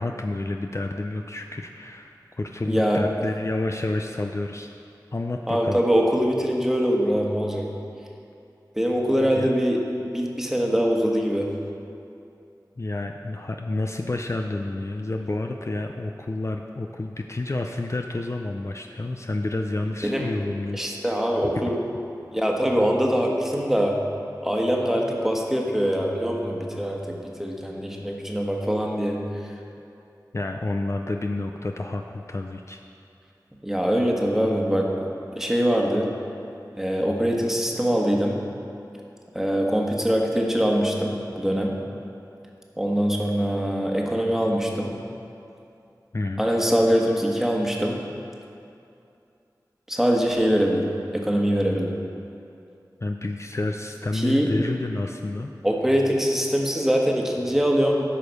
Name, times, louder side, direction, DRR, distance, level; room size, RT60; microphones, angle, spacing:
voice 1, 0.0-4.7 5.1-5.8 9.2-9.5 12.8-21.2 30.3-32.8 46.1-46.4 53.0-55.5, left 2 dB, 40° left, 3 dB, 0.5 m, -29 dB
voice 2, 2.7-3.0 5.5-7.7 8.8-11.5 20.0-20.3 20.7-21.8 22.3-24.0 24.4-29.6 33.6-34.9 35.4-36.1 36.8-38.4 39.3-41.8 42.8-44.9 46.4-48.0 49.9-51.9 54.1-54.5 55.6-58.0, equal, 5° right, -1 dB, 1.3 m, -23 dB
13.0 x 4.9 x 5.3 m, 2.6 s
wide cardioid pair, 45°, 7 cm